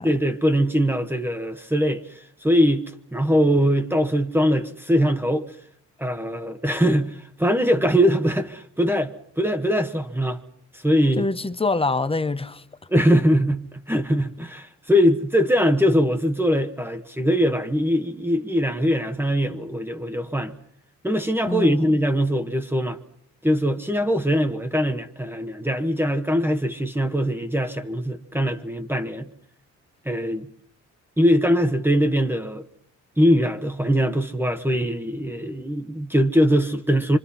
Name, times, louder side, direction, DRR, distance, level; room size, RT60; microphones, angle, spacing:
voice 1, 0.0-5.4 6.0-10.4 10.7-11.3 12.9-20.6 21.0-23.0 23.4-29.3 30.0-30.5 31.2-32.7 33.2-37.2, equal, 5° right, 1.3 m, -22 dB
voice 2, 11.2-12.6 21.4-21.9, left 3 dB, 20° left, 1.0 m, -25 dB
26.0 x 25.5 x 5.7 m
cardioid pair, 90°, 30 cm